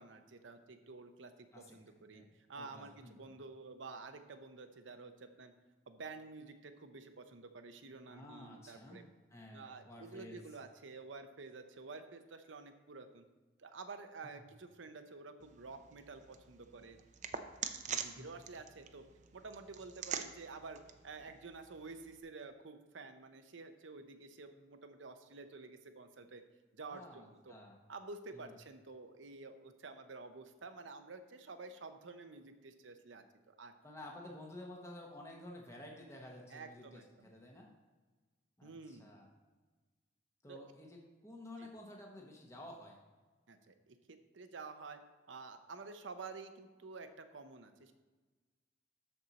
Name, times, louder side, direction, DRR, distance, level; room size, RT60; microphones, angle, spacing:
voice 1, 0.0-2.2 2.5-5.5 5.9-9.0 9.5-13.2 13.6-17.0 17.9-19.1 19.3-20.8 21.0-26.4 26.7-27.5 27.9-33.7 36.5-37.3 38.6-39.1 40.5-40.6 41.6-41.7 43.5-45.0 45.3-47.9, right 3 dB, 85° right, 8 dB, 0.8 m, -50 dB
voice 2, 2.6-3.2 8.1-10.4 18.2-18.3 26.8-27.8 28.3-28.5 33.8-37.7 38.6-39.3 40.4-43.0, left 1 dB, 15° left, -1 dB, 1.0 m, -52 dB
sound 1, 15.4-22.2, right 7 dB, 40° right, 0.5 m, -46 dB
13.0 x 4.5 x 4.1 m, 1.3 s
head